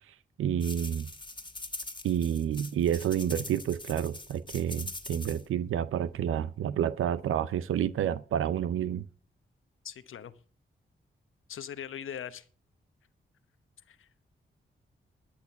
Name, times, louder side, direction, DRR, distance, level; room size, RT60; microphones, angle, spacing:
voice 1, 0.1-1.1 2.0-9.0, right 9 dB, 90° right, 0.6 m, -29 dB
sound 1, 0.6-5.4, left 2 dB, 20° left, 2.0 m, -42 dB
voice 2, 9.8-10.3 11.5-12.5 13.9-14.1, left 9 dB, 80° left, 1.0 m, -40 dB
12.0 x 8.9 x 7.0 m
cardioid pair, 45°, 21 cm